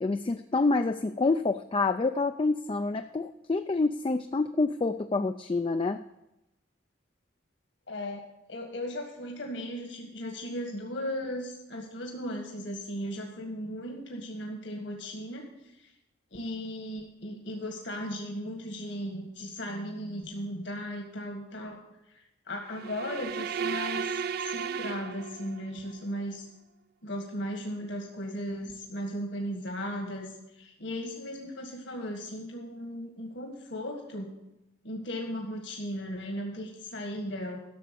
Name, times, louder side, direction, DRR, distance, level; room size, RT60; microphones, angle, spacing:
voice 1, 0.0-6.0, left 3 dB, 25° left, 8 dB, 0.3 m, -27 dB
voice 2, 7.9-8.2 8.5-15.4 15.8-15.9 16.3-21.8 22.1-22.2 22.5-26.5 27.0-34.3 34.8-37.6, equal, 65° left, 2 dB, 1.8 m, -36 dB
sound 1, 22.7-25.8, right 7 dB, 50° right, 0.4 m, -34 dB
12.0 x 7.0 x 6.9 m, 0.90 s
head